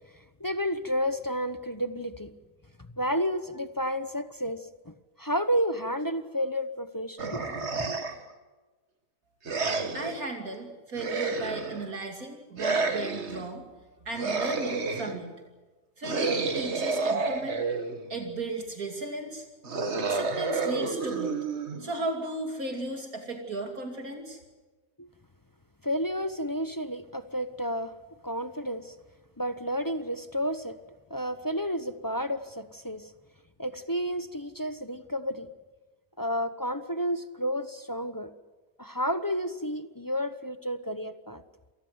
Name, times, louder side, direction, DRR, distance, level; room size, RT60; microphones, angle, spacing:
voice 1, 0.1-2.3 2.8-8.1 25.0-25.1 25.8-27.9 28.2-28.9 29.4-30.8 31.1-33.1 33.6-35.5 36.2-38.3 38.8-41.4, equal, 20° left, 11 dB, 0.6 m, -31 dB
sound 1, 7.2-8.3 9.5-10.2 11.0-11.9 12.6-13.5 14.1-15.2 16.0-18.1 19.6-22.1, right 4 dB, 45° right, 1.9 m, -30 dB
voice 2, 9.9-13.6 14.0-15.4 16.0-17.6 18.1-19.5 20.0-21.4 21.8-24.4, right 2 dB, 60° right, 3 dB, 3.1 m, -35 dB
27.5 x 19.0 x 8.0 m, 1.3 s
omnidirectional pair, 1.7 m